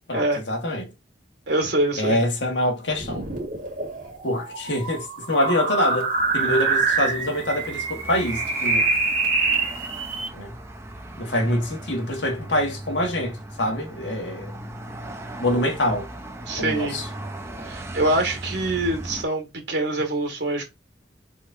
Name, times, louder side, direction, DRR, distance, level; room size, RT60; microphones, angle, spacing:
voice 1, 0.1-0.9 2.0-3.3 4.2-8.9 10.3-10.5 11.2-14.5 15.4-16.1 16.6-17.1, left 1 dB, 75° left, 1.6 m, -25 dB
voice 2, 1.5-2.2 16.5-17.0 17.6-20.6, right 1 dB, 70° right, 2.1 m, -24 dB
sound 1, 2.9-10.3, right 3 dB, 50° right, 2.0 m, -25 dB
sound 2, 6.2-19.2, right 1 dB, 15° right, 0.8 m, -38 dB
4.7 x 4.1 x 2.7 m
head